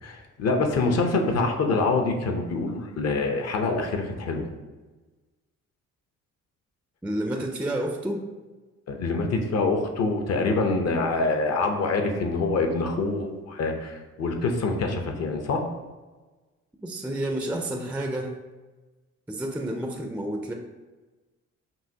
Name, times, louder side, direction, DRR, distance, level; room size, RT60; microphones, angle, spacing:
voice 1, 0.0-4.5 8.9-15.6, left 3 dB, 55° left, 4 dB, 0.7 m, -25 dB
voice 2, 7.0-8.2 16.8-18.4 19.3-20.5, right 1 dB, 5° right, 3 dB, 0.4 m, -30 dB
5.6 x 2.7 x 2.8 m, 1.2 s
cardioid pair, 90°, 30 cm